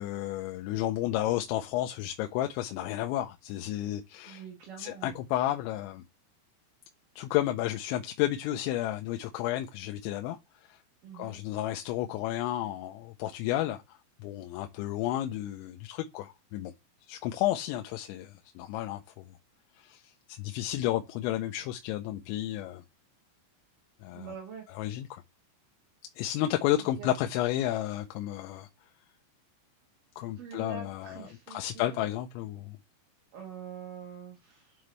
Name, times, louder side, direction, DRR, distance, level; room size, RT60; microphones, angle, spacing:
voice 1, 0.0-4.4 4.8-6.0 7.2-10.4 10.7-10.8 11.1-16.7 17.1-19.2 19.8-22.8 24.0-24.3 24.7-25.2 26.2-28.7 30.2-32.8, left 13 dB, 85° left, 2.9 m, -32 dB
voice 2, 4.3-5.2 11.0-11.4 24.1-24.7 27.0-27.1 30.4-32.1 33.3-34.8, right 6 dB, 60° right, 2.4 m, -44 dB
9.4 x 3.8 x 3.1 m
omnidirectional pair, 5.4 m